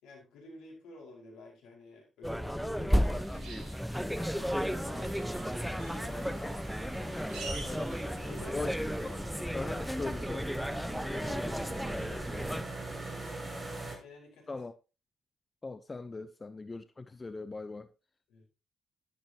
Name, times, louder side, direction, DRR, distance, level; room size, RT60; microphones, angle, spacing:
voice 1, 0.0-5.1 5.7-6.6 8.0-8.6 11.1-13.7 14.0-14.5 18.3-18.4, left 2 dB, 75° left, 5.1 m, -52 dB
sound 1, 2.2-12.6, equal, ahead, 1.0 m, -34 dB
sound 2, 2.9-8.4, right 4 dB, 75° right, 3.5 m, -49 dB
street cleaning, 4.3-14.0, right 2 dB, 25° right, 6.3 m, -42 dB
voice 2, 6.1-6.6 7.6-7.9 8.5-10.5 14.5-14.7 15.6-17.9, left 3 dB, 35° left, 0.8 m, -41 dB
12.0 x 11.5 x 3.0 m
hypercardioid pair, 45°, 0 cm